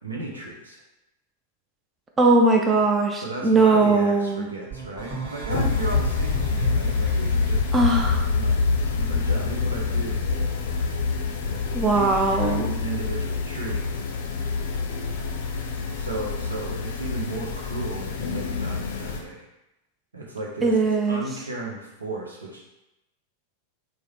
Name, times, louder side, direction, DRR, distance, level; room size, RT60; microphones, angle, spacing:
voice 1, 0.0-0.8 3.2-7.6 8.2-8.6 8.9-10.2 11.9-13.8 16.0-19.5 20.1-20.8 21.1-22.7, right 2 dB, 75° right, -2 dB, 0.7 m, -34 dB
voice 2, 2.2-4.5 7.7-8.2 11.7-12.7 20.6-21.2, right 3 dB, 15° right, 1 dB, 0.4 m, -20 dB
sound 1, 4.7-7.4, right 5 dB, 55° right, 1.2 m, -35 dB
sound 2, 5.5-19.2, left 4 dB, 60° left, 0.5 m, -26 dB
3.5 x 2.1 x 3.2 m, 0.93 s
figure-of-eight pair, 90°, 0 cm